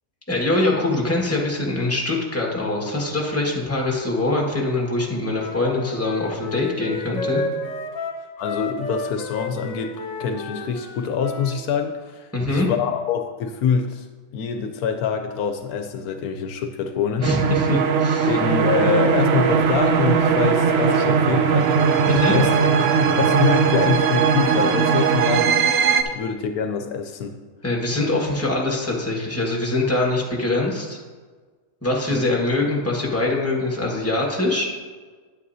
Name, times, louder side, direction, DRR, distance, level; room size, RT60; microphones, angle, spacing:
voice 1, 0.3-7.4 12.3-12.7 17.2-18.3 22.1-22.3 27.6-31.0 31.8-34.7, left 2 dB, 10° left, -2 dB, 1.6 m, -23 dB
Wind instrument woodwind instrument, 5.3-11.6, left 2 dB, 65° left, 1.3 m, -32 dB
voice 2, 8.4-14.1 14.3-17.3 18.3-21.7 22.3-22.5 23.2-27.4 32.1-32.2, left 6 dB, 80° left, 6 dB, 1.1 m, -25 dB
sound 1, 17.2-26.0, right 6 dB, 60° right, 0.7 m, -19 dB
9.6 x 9.2 x 2.8 m, 1.4 s
omnidirectional pair, 1.6 m